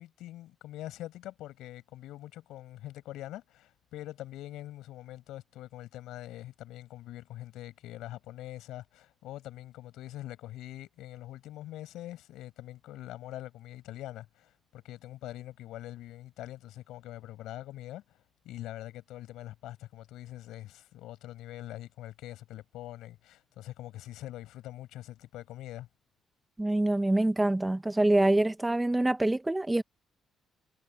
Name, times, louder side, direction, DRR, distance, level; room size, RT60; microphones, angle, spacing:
voice 1, 0.0-25.9, left 14 dB, 90° left, 7.8 m, -44 dB
voice 2, 26.6-29.8, right 1 dB, 15° right, 1.9 m, -25 dB
cardioid pair, 90°, 0 cm